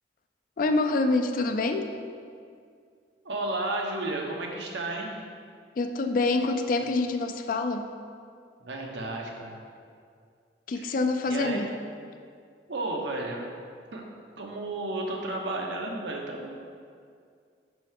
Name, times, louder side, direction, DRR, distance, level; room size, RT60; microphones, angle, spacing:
voice 1, 0.6-1.9 5.8-7.9 10.7-11.7, left 3 dB, 50° left, 7 dB, 0.4 m, -26 dB
voice 2, 3.2-5.2 8.6-9.6 10.7-10.9 11.2-11.6 12.7-13.5 13.9-14.1 14.4-16.5, right 2 dB, 85° right, 0 dB, 0.9 m, -32 dB
6.1 x 5.5 x 3.6 m, 2.2 s
head